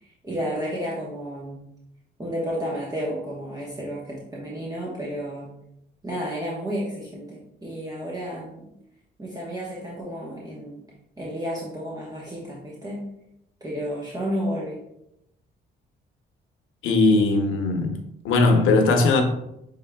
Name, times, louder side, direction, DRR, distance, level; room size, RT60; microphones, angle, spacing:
voice 1, 0.0-1.6 2.2-5.5 6.0-8.6 9.2-10.8 11.2-13.0 13.6-14.8, equal, 20° right, -5 dB, 1.0 m, -31 dB
voice 2, 16.8-18.0 18.2-19.2, left 3 dB, 90° left, 5 dB, 0.8 m, -19 dB
6.4 x 3.5 x 2.2 m, 0.81 s
cardioid pair, 90°, 20 cm